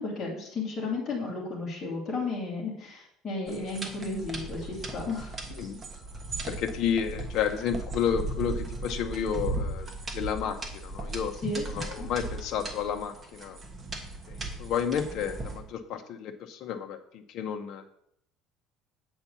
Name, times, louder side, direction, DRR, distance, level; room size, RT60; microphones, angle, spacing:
voice 1, 0.0-5.4 11.4-12.1, left 3 dB, 20° left, -6 dB, 2.5 m, -33 dB
sound 1, 3.5-15.6, right 2 dB, 20° right, 1.2 m, -37 dB
voice 2, 6.5-11.3 11.7-13.6 14.3-17.8, left 8 dB, 50° left, 6 dB, 0.9 m, -31 dB
8.1 x 4.4 x 6.9 m, 0.71 s
cardioid pair, 175°, 0 cm